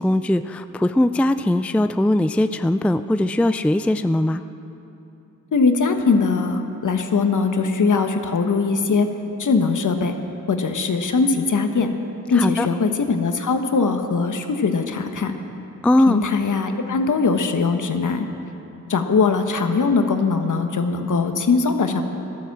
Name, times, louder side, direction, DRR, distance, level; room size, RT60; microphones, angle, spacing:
voice 1, 0.0-4.4 12.4-12.7 15.8-16.2, left 1 dB, 5° left, 11 dB, 0.4 m, -20 dB
voice 2, 5.5-9.1 9.4-10.1 10.5-11.9 12.3-15.4 16.1-18.3 18.9-22.0, left 4 dB, 60° left, 6 dB, 1.3 m, -21 dB
13.5 x 12.0 x 7.3 m, 2.9 s
cardioid pair, 50°, 35 cm